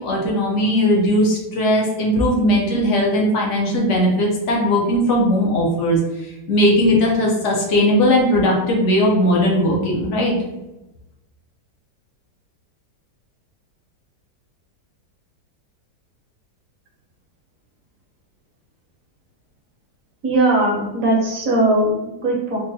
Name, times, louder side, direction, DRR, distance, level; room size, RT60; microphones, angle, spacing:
voice 1, 0.0-6.0 6.5-10.3, equal, 65° left, -2 dB, 0.7 m, -18 dB
voice 2, 20.2-22.6, right 2 dB, 60° right, -1 dB, 0.9 m, -19 dB
3.7 x 2.1 x 2.6 m, 0.98 s
omnidirectional pair, 1.9 m